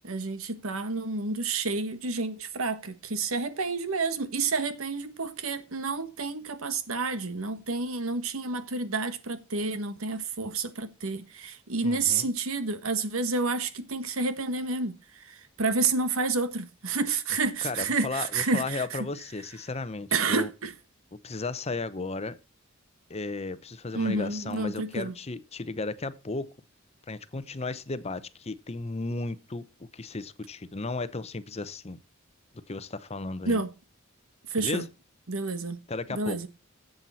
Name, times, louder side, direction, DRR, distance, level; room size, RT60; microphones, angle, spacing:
voice 1, 0.0-19.1 20.1-20.7 23.9-25.2 33.5-33.7 34.5-34.8 35.3-35.8 36.1-36.5, right 3 dB, 90° right, 1.4 m, -29 dB
voice 2, 11.8-12.2 17.6-20.5 21.2-22.4 23.1-26.5 27.1-29.6 29.9-32.0 32.7-33.6 34.6-34.9 35.9-36.4, left 3 dB, 30° left, 0.7 m, -34 dB
12.0 x 7.9 x 4.1 m
head